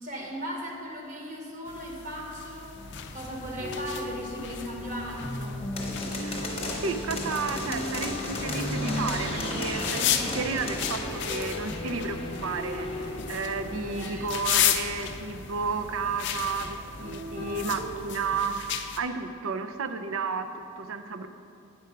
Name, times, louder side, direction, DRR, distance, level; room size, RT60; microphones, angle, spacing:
voice 1, 0.0-2.8 3.1-5.6 13.6-14.3, equal, 35° right, -1 dB, 1.0 m, -37 dB
sound 1, 1.7-19.0, left 9 dB, 55° left, 0.4 m, -35 dB
sound 2, 2.7-18.0, left 1 dB, 25° left, 0.9 m, -35 dB
voice 2, 6.8-21.3, right 4 dB, 70° right, 9 dB, 0.5 m, -32 dB
8.8 x 4.7 x 5.7 m, 2.4 s
head